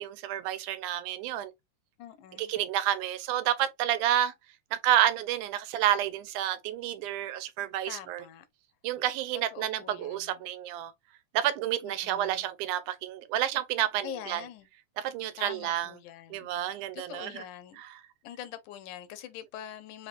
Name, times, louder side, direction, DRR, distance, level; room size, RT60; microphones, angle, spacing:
voice 1, 0.0-1.5 2.4-4.3 4.8-8.2 8.8-10.9 11.3-14.4 15.0-15.9 16.3-17.4 17.8-17.9, right 12 dB, 85° right, 2.1 m, -29 dB
voice 2, 2.0-2.5 7.9-8.5 9.5-10.5 11.8-12.5 14.0-14.7 15.4-17.8 18.2-20.1, left 11 dB, 85° left, 2.2 m, -44 dB
5.7 x 3.3 x 2.5 m
omnidirectional pair, 3.5 m